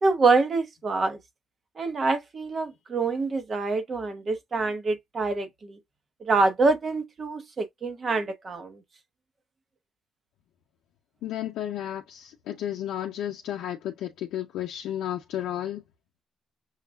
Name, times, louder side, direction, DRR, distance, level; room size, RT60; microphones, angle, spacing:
voice 1, 0.0-1.2 1.8-5.8 6.2-8.8, right 3 dB, 40° right, 0.9 m, -26 dB
voice 2, 11.2-15.8, left 11 dB, 85° left, 0.6 m, -32 dB
6.4 x 2.2 x 2.2 m
cardioid pair, 90°, 0 cm